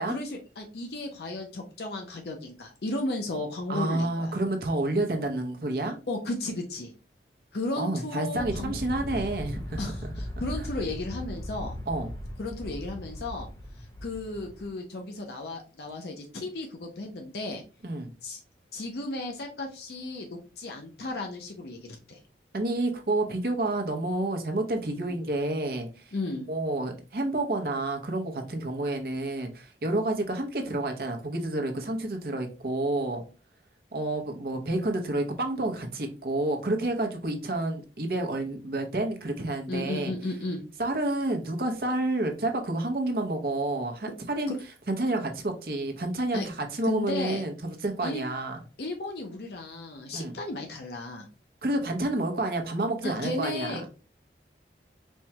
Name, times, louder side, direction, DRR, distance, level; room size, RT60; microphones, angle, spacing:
voice 1, 0.0-4.3 6.1-6.9 7.5-8.8 9.8-11.8 12.4-13.5 14.0-17.6 18.2-18.4 18.7-21.8 22.1-22.2 24.9-25.2 26.1-26.5 39.7-40.6 44.5-44.6 46.3-46.4 46.8-47.4 48.0-48.2 48.8-51.3 53.0-53.9, left 2 dB, 65° left, 3 dB, 0.6 m, -34 dB
voice 2, 3.7-6.0 7.8-10.0 10.6-10.7 11.9-12.1 17.8-18.1 22.5-26.1 26.5-33.2 33.9-40.1 40.8-44.5 44.9-48.6 50.1-50.3 51.6-53.9, right 2 dB, 55° right, 4 dB, 0.7 m, -29 dB
Aircraft, 8.3-14.7, equal, 25° left, 0.5 m, -38 dB
4.4 x 2.3 x 2.8 m, 0.34 s
head